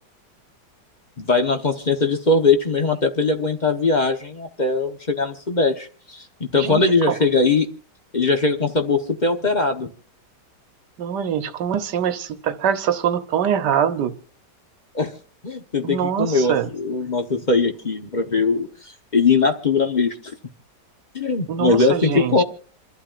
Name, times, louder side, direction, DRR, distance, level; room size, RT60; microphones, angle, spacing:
voice 1, 1.2-7.7 8.1-9.9 14.9-15.1 15.4-20.2 21.1-22.4, left 3 dB, 30° left, 5 dB, 0.9 m, -20 dB
voice 2, 6.6-7.1 11.0-14.2 15.8-16.7 21.5-22.4, right 8 dB, 75° right, 9 dB, 1.5 m, -23 dB
28.0 x 12.0 x 2.5 m, 0.39 s
omnidirectional pair, 1.9 m